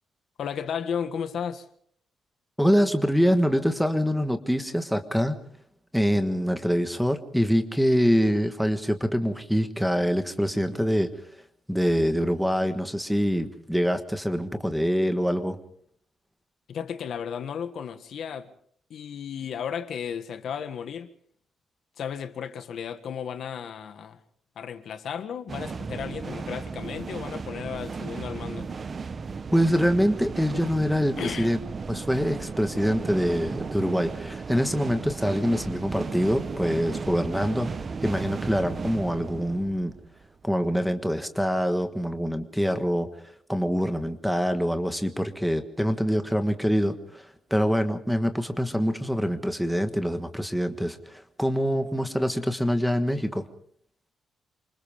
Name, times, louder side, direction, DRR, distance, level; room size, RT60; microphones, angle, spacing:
voice 1, 0.4-1.7 16.7-18.5 18.9-21.1 22.0-24.2 24.5-28.7 30.9-31.5, left 7 dB, 55° left, 1.5 m, -34 dB
voice 2, 2.6-5.4 5.9-11.1 11.7-15.6 29.5-31.6 31.9-37.7 38.0-39.9 40.4-43.1 43.5-53.4, equal, ahead, 1.4 m, -25 dB
sound 1, 25.5-40.3, right 5 dB, 30° right, 0.9 m, -35 dB
28.0 x 26.0 x 3.6 m
cardioid pair, 170°, 0 cm